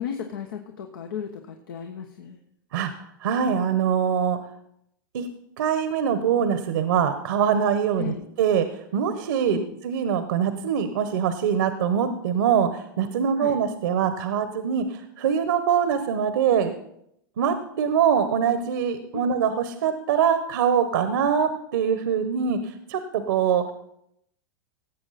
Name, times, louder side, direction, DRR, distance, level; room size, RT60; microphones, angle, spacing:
voice 1, 0.0-2.4 8.0-8.3 9.4-9.7 13.4-13.6 19.1-19.3, left 8 dB, 80° left, 4 dB, 1.3 m, -34 dB
voice 2, 2.7-4.4 5.1-5.3 5.6-8.7 8.9-9.6 9.8-16.7 17.4-23.6, right 7 dB, 75° right, 9 dB, 1.2 m, -23 dB
17.5 x 7.5 x 4.2 m, 0.75 s
hypercardioid pair, 115°, 11 cm